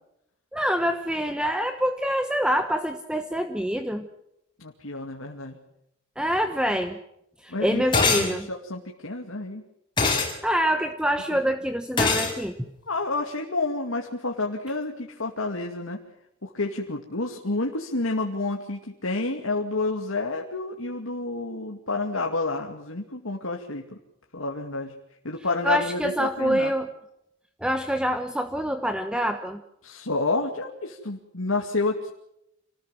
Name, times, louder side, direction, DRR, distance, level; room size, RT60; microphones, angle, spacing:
voice 1, 0.5-4.1 6.2-7.0 7.4-8.4 10.2-12.7 25.6-26.9 27.6-29.6, equal, 5° right, 7 dB, 1.1 m, -26 dB
voice 2, 4.6-5.6 7.5-9.6 11.3-11.4 12.9-16.0 16.4-23.9 24.3-24.9 25.2-26.7 29.8-32.1, left 3 dB, 85° left, 1 dB, 2.4 m, -29 dB
sound 1, 7.9-8.3 10.0-10.3 12.0-12.3, left 3 dB, 25° left, 4.9 m, -22 dB
27.0 x 19.5 x 7.6 m, 0.81 s
head